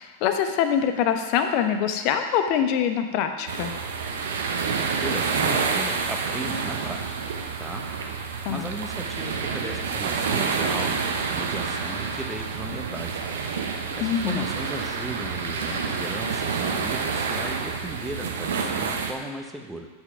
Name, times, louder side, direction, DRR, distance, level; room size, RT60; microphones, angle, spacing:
voice 1, 0.0-3.7 8.4-8.7 14.0-14.5, left 8 dB, 45° left, 7 dB, 0.8 m, -24 dB
sound 1, 3.5-19.1, right 5 dB, 60° right, 0.9 m, -28 dB
voice 2, 5.0-7.0 7.6-7.8 8.5-11.1 11.3-13.2 13.9-19.9, right 1 dB, 5° right, 2 dB, 1.0 m, -36 dB
8.1 x 5.8 x 5.8 m, 1.3 s
figure-of-eight pair, 90°, 0 cm